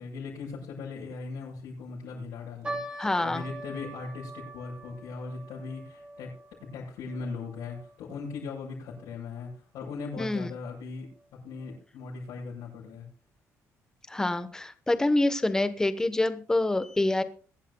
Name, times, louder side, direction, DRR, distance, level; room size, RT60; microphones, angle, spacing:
voice 1, 0.0-6.3 6.6-11.1 11.4-13.1, left 4 dB, 80° left, -6 dB, 7.4 m, -39 dB
sound 1, 2.6-9.1 9.4-9.5 10.3-10.5 11.1-11.2 11.6-11.8, right 2 dB, 15° right, 2.9 m, -43 dB
voice 2, 3.0-3.4 10.2-10.5 14.1-17.2, left 2 dB, 10° left, 11 dB, 1.0 m, -26 dB
23.5 x 11.5 x 2.2 m, 0.40 s
cardioid pair, 150°, 6 cm